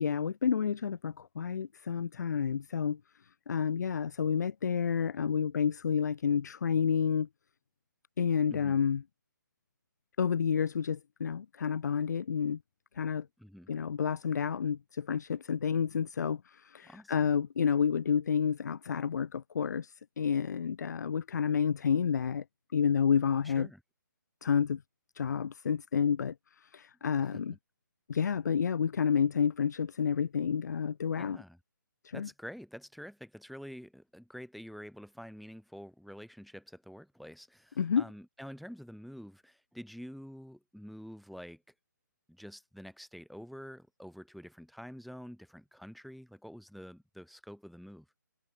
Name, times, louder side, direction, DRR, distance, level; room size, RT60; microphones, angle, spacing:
voice 1, 0.0-3.0 3.5-7.3 8.2-9.0 10.2-12.6 13.0-13.3 13.7-22.4 22.7-23.7 24.4-24.8 25.1-26.3 26.6-27.5 28.1-31.4 32.0-32.3 37.8-38.0, left 7 dB, 60° left, 1.0 m, -30 dB
voice 2, 8.5-8.8 13.4-13.7 16.8-17.4 23.4-23.8 27.2-27.6 31.2-31.6 32.1-41.6 42.3-48.1, equal, ahead, 1.8 m, -48 dB
hypercardioid pair, 155°, 11 cm